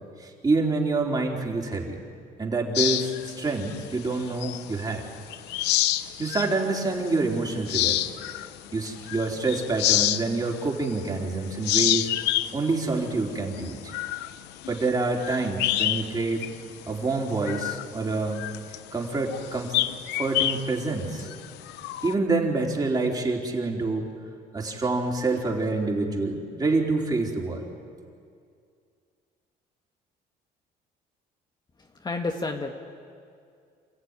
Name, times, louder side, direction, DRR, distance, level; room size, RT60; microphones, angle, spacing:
voice 1, 0.2-2.0 2.4-5.1 6.2-8.1 8.7-12.1 12.5-13.9 14.7-16.5 16.9-18.4 18.9-19.7 20.1-21.3 22.0-24.1 24.5-27.6, right 3 dB, 25° right, 0 dB, 3.8 m, -27 dB
sound 1, 2.7-4.9 5.3-6.6 7.1-7.2 7.6-11.3 11.6-16.1 16.4-16.6 17.0-22.1, left 14 dB, 90° left, 0.8 m, -28 dB
voice 2, 31.8-32.7, left 3 dB, 25° left, 3 dB, 1.6 m, -30 dB
27.5 x 15.0 x 9.8 m, 2.3 s
cardioid pair, 110°, 17 cm